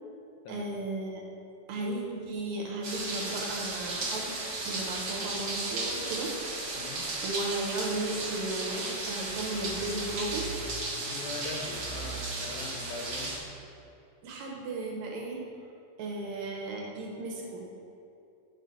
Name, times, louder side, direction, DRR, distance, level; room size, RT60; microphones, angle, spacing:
voice 1, 0.5-1.2 1.7-4.3 4.7-6.3 6.9-10.8 14.2-15.4 16.0-17.7, right 2 dB, 75° right, -1 dB, 2.1 m, -35 dB
sound 1, 2.8-13.4, right 2 dB, 55° right, 1.2 m, -35 dB
voice 2, 6.8-7.1 11.0-13.4, left 3 dB, 80° left, 1 dB, 2.0 m, -41 dB
7.6 x 4.9 x 4.0 m, 2.7 s
omnidirectional pair, 3.4 m